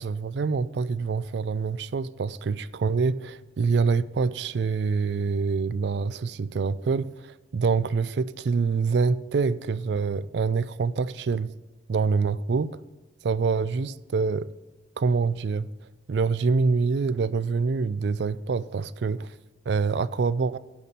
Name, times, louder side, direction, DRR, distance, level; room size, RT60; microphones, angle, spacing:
voice 1, 0.0-11.5 11.9-12.8 13.2-14.5 15.0-15.7 16.1-19.3 19.7-20.6, right 4 dB, 65° right, 0.4 m, -26 dB
10.5 x 4.2 x 7.4 m
head